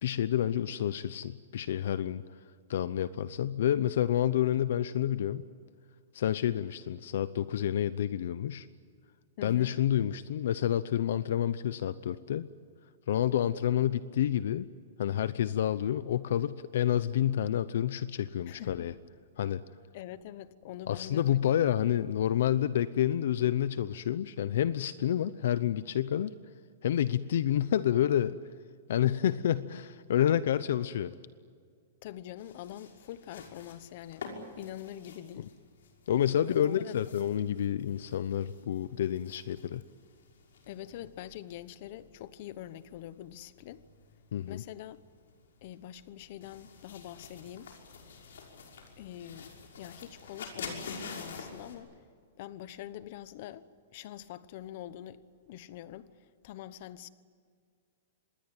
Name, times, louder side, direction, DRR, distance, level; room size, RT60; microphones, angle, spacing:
voice 1, 0.0-2.2 2.7-5.5 6.1-8.7 9.4-12.5 13.1-14.7 15.0-18.9 19.4-19.6 20.9-26.3 26.8-28.4 28.9-31.1 35.4-35.5 36.1-39.8 44.3-44.6, left 10 dB, 60° left, 0.7 m, -29 dB
voice 2, 9.4-9.7 18.5-18.9 19.9-21.5 32.0-34.3 34.6-35.5 36.4-37.0 40.7-43.8 44.5-45.0 45.6-47.7 49.0-51.9 52.4-53.7 53.9-56.1 56.4-57.1, left 12 dB, 40° left, 1.0 m, -44 dB
sound 1, 32.4-51.8, left 5 dB, 80° left, 6.0 m, -49 dB
26.0 x 21.0 x 9.0 m
hypercardioid pair, 175°, 0 cm